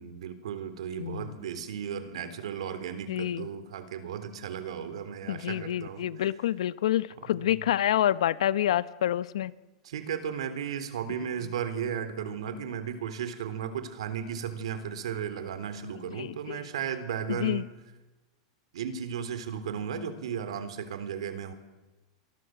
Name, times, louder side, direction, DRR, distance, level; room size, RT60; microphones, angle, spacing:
voice 1, 0.0-6.1 7.2-7.6 9.8-17.7 18.7-21.5, right 8 dB, 90° right, 12 dB, 3.7 m, -35 dB
voice 2, 1.0-1.4 3.1-3.5 5.3-9.5 16.2-16.6 17.3-17.6, left 11 dB, 90° left, 16 dB, 1.0 m, -28 dB
28.0 x 23.5 x 7.9 m, 1.1 s
supercardioid pair, 150°, 3 cm